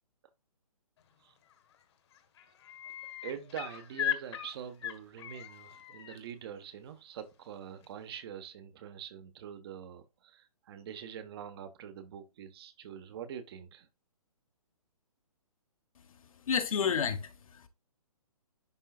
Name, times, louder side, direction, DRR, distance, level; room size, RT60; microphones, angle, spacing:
sound 1, 1.5-1.8 2.1-6.2 7.8-7.9, left 11 dB, 45° left, 1.6 m, -38 dB
voice 1, 3.2-13.9, right 9 dB, 40° right, 1.3 m, -44 dB
voice 2, 16.4-17.7, left 7 dB, 65° left, 1.6 m, -31 dB
11.0 x 3.8 x 2.4 m
hypercardioid pair, 150°, 19 cm